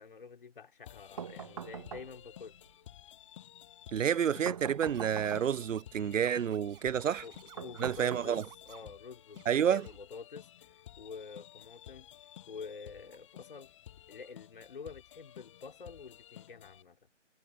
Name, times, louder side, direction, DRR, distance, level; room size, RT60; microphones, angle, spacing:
voice 1, 0.0-2.6 7.2-8.4 8.7-10.5 11.0-12.1 12.5-13.7 14.1-17.0, left 5 dB, 45° left, 3.1 m, -48 dB
sound 1, 0.8-16.8, left 12 dB, 25° left, 7.2 m, -54 dB
sound 2, 1.2-2.4 4.5-5.7 7.6-8.7, right 7 dB, 25° right, 1.3 m, -43 dB
voice 2, 3.9-7.2 7.8-8.4 9.5-9.9, right 8 dB, 85° right, 0.5 m, -29 dB
Scratching (performance technique), 4.9-8.9 9.3-10.0, right 18 dB, 10° right, 4.9 m, -56 dB
figure-of-eight pair, 155°, 37 cm